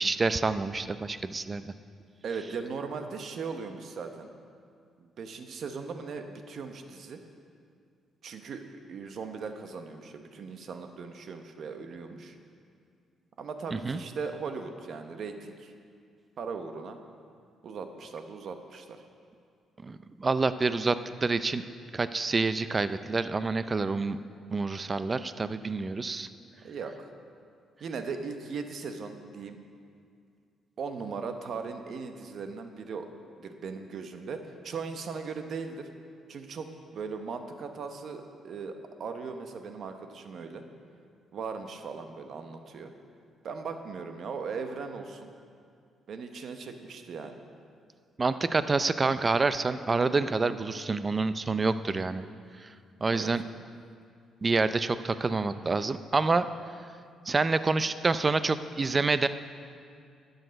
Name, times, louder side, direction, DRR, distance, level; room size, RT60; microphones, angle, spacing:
voice 1, 0.0-1.7 13.7-14.0 19.8-21.6 21.9-24.2 24.5-26.3 48.2-52.2 52.6-52.7 53.0-53.4 54.4-56.5 57.3-59.3, right 3 dB, 30° right, 13 dB, 0.4 m, -27 dB
voice 2, 2.2-4.3 5.0-7.2 8.2-8.6 8.9-12.4 13.4-15.7 16.4-17.0 17.6-19.0 26.6-27.1 27.8-29.6 30.8-33.1 33.4-35.9 36.3-38.7 39.0-40.6 41.3-42.9 43.4-45.3 46.1-47.4 53.1-53.3, right 5 dB, 60° right, 7 dB, 0.9 m, -38 dB
12.0 x 8.0 x 5.2 m, 2.3 s
cardioid pair, 90°, 0 cm